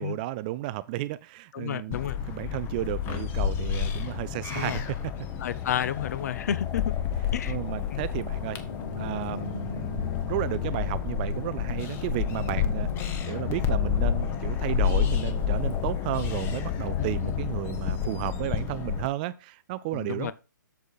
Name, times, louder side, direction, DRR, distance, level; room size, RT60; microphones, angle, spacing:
voice 1, 0.0-2.0 2.3-5.1 7.4-8.6 9.0-20.3, right 16 dB, 25° right, 0.3 m, -33 dB
voice 2, 1.5-2.2 4.5-4.8 5.4-6.9 7.3-7.6 7.9-8.0 17.0-17.4 19.9-20.3, left 9 dB, 55° left, 0.7 m, -31 dB
sound 1, 1.9-19.1, left 8 dB, 20° left, 1.0 m, -30 dB
sound 2, 7.9-16.2, left 4 dB, 75° left, 2.3 m, -41 dB
8.1 x 6.9 x 4.0 m
hypercardioid pair, 140°, 11 cm